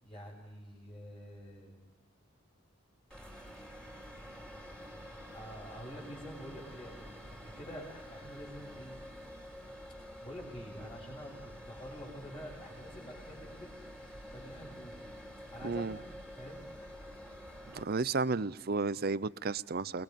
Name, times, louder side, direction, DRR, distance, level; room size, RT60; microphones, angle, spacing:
voice 1, 0.0-1.8 5.3-9.0 10.2-13.7 14.3-15.0 15.5-16.7, equal, 25° left, -5 dB, 6.4 m, -47 dB
sound 1, 3.1-17.8, equal, 5° left, 3.9 m, -49 dB
voice 2, 15.6-16.0 17.7-20.0, right 4 dB, 50° right, 17 dB, 0.6 m, -32 dB
29.0 x 21.5 x 5.3 m, 1.2 s
head